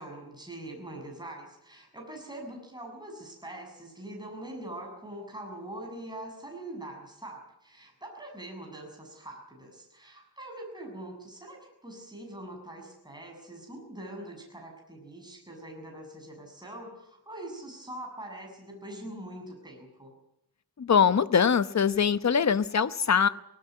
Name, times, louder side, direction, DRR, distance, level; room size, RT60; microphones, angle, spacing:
voice 1, 0.0-20.1, right 1 dB, 10° right, 1 dB, 7.3 m, -43 dB
voice 2, 20.8-23.3, left 7 dB, 45° left, 13 dB, 1.0 m, -23 dB
19.5 x 18.5 x 9.5 m, 0.76 s
wide cardioid pair, 135°, 38 cm